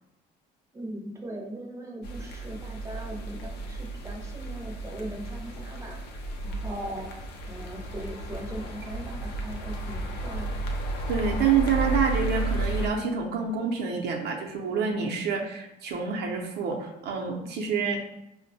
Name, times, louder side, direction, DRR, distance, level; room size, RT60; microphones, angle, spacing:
voice 1, 0.7-7.1 7.5-10.5, right 1 dB, 15° right, 1 dB, 0.6 m, -39 dB
sound 1, 2.0-12.9, right 2 dB, 90° left, 0.5 m, -33 dB
voice 2, 11.1-18.0, right 6 dB, 75° right, 1 dB, 0.6 m, -27 dB
5.0 x 2.1 x 2.7 m, 0.88 s
cardioid pair, 110°, 17 cm